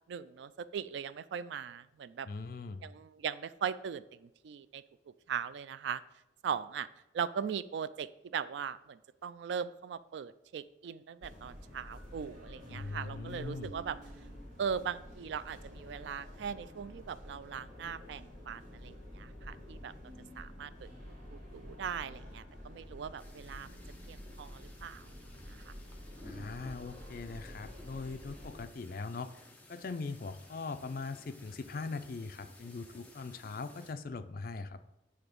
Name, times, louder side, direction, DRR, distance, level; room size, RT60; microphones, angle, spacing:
voice 1, 0.1-2.3 2.8-4.8 5.3-6.0 6.4-6.9 7.1-14.0 14.6-19.9 20.4-23.8 24.1-25.0 25.7-25.8, right 7 dB, 75° right, 16 dB, 0.3 m, -39 dB
voice 2, 2.2-2.8 12.7-13.7 26.2-29.3 29.7-34.8, left 4 dB, 50° left, 10 dB, 0.4 m, -41 dB
sound 1, 11.2-28.7, equal, 45° right, 2.1 m, -49 dB
sound 2, 23.2-33.9, left 1 dB, 10° left, 0.7 m, -56 dB
8.0 x 3.3 x 5.2 m, 0.91 s
head